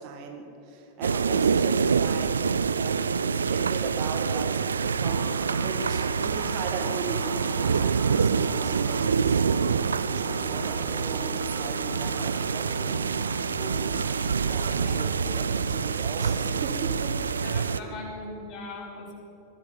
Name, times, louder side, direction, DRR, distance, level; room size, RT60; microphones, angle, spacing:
voice 1, 0.0-13.3 14.5-17.1 17.8-17.9, right 5 dB, 45° right, 3 dB, 1.9 m, -37 dB
sound 1, 1.0-17.8, right 6 dB, 70° right, 0.4 m, -26 dB
sound 2, 4.9-18.2, right 1 dB, 5° right, 4.2 m, -42 dB
sound 3, 9.9-17.4, right 1 dB, 85° right, 4.0 m, -47 dB
voice 2, 17.4-19.2, left 2 dB, 35° left, -2 dB, 3.8 m, -40 dB
21.0 x 16.0 x 4.1 m, 2.8 s
figure-of-eight pair, 90°, 0 cm